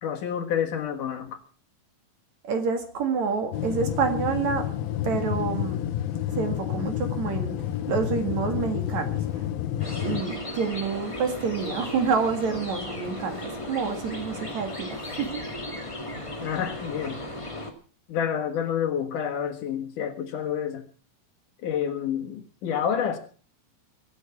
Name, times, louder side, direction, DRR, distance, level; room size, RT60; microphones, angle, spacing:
voice 1, 0.0-1.4 16.4-17.2 18.1-20.9 21.6-23.2, left 8 dB, 65° left, 2.9 m, -28 dB
voice 2, 2.4-4.7 5.0-5.8 6.3-7.5 7.9-9.5 9.9-15.4, right 5 dB, 55° right, 2.9 m, -28 dB
sound 1, 3.5-10.2, left 11 dB, 80° left, 2.8 m, -29 dB
sound 2, 9.8-17.7, left 1 dB, 15° left, 1.2 m, -36 dB
24.5 x 8.3 x 5.9 m
omnidirectional pair, 4.3 m